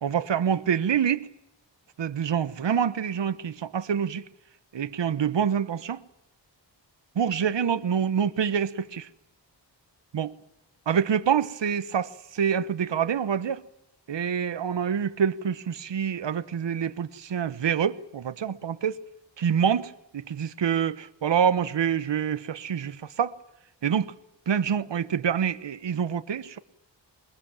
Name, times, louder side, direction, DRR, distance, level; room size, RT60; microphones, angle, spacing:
voice 1, 0.0-1.3 2.0-4.2 4.7-6.0 7.1-9.1 10.1-10.3 10.9-13.6 14.1-19.0 19.4-23.4 23.8-24.1 24.5-26.6, right 8 dB, 70° right, 1.2 m, -26 dB
22.0 x 22.0 x 8.9 m
wide cardioid pair, 105°, 45 cm